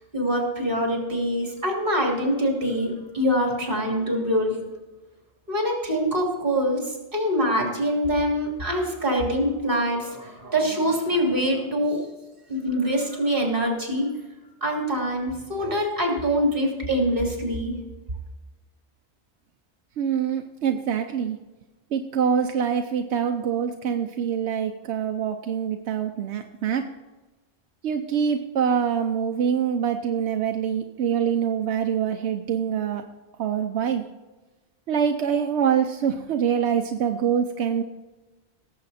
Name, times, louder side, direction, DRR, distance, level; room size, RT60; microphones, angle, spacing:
voice 1, 0.1-4.6 5.5-12.0 12.5-14.1 14.6-17.7, equal, 55° right, 0 dB, 3.2 m, -24 dB
voice 2, 20.0-21.4 21.9-26.8 27.8-33.0 33.4-34.0 34.9-37.8, right 8 dB, 90° right, 5 dB, 1.0 m, -25 dB
18.0 x 7.6 x 4.2 m, 1.2 s
omnidirectional pair, 1.1 m